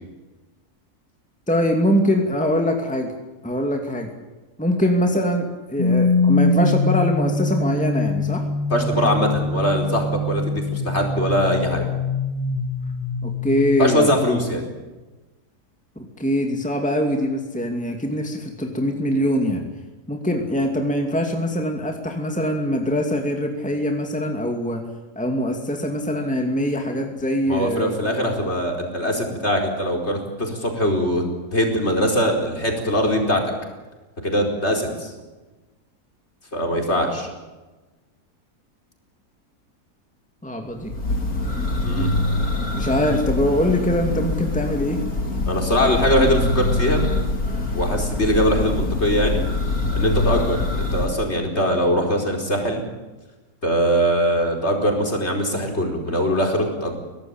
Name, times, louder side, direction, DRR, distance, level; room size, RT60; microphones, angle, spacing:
voice 1, 1.5-3.1 3.4-4.1 4.6-8.5 13.2-14.1 16.0-19.6 20.1-24.8 25.2-28.0 40.4-40.9 42.8-45.0, equal, 5° left, 3 dB, 2.5 m, -23 dB
sound 1, 5.8-14.0, left 3 dB, 25° left, 1.7 m, -23 dB
voice 2, 8.7-11.8 13.8-14.6 27.5-31.2 31.5-33.4 34.2-35.1 36.5-37.3 41.8-42.1 45.5-47.0 47.7-49.4 49.9-52.8 53.6-57.0, equal, 40° left, 2 dB, 5.0 m, -22 dB
Church bell, 40.8-51.1, left 2 dB, 65° left, 3.6 m, -24 dB
23.0 x 18.0 x 8.9 m, 1.2 s
omnidirectional pair, 1.7 m